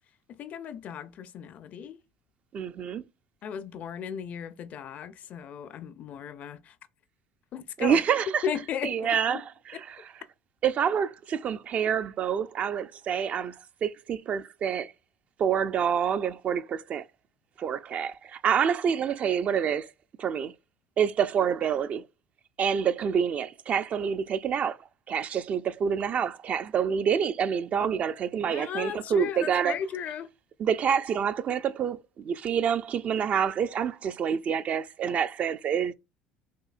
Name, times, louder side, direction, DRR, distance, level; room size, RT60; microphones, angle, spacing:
voice 1, 0.3-2.0 3.4-6.7 7.5-8.0 8.4-9.4 28.5-30.3, left 7 dB, 50° left, 0.5 m, -36 dB
voice 2, 2.5-3.0 7.8-8.4 8.8-10.1 10.6-14.9 15.4-17.1 17.6-19.9 20.2-20.5 21.0-22.1 22.6-24.8 25.1-29.8 30.6-35.9, right 7 dB, 45° right, 0.4 m, -27 dB
5.7 x 2.7 x 2.5 m
supercardioid pair, 80°, 3 cm